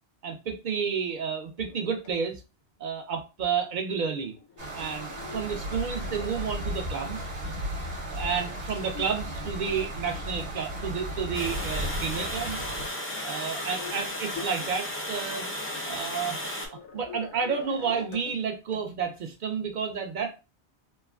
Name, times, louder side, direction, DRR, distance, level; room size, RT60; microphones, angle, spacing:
voice 1, 0.2-2.4 2.8-4.4 4.7-7.3 8.1-12.6 13.2-16.4 16.9-20.4, right 6 dB, 60° right, 4 dB, 0.5 m, -31 dB
sound 1, 1.5-2.1 3.8-6.5 7.1-12.4 12.7-12.8 13.5-14.1 14.3-14.6 15.4-15.5 15.7-18.4 18.7-18.8 19.6-19.7, left 6 dB, 85° left, 0.9 m, -46 dB
sound 2, 4.6-12.9, equal, 40° right, 0.9 m, -35 dB
Water, 11.3-16.7, left 1 dB, 20° left, 0.4 m, -34 dB
3.0 x 2.1 x 2.3 m, 0.29 s
omnidirectional pair, 1.2 m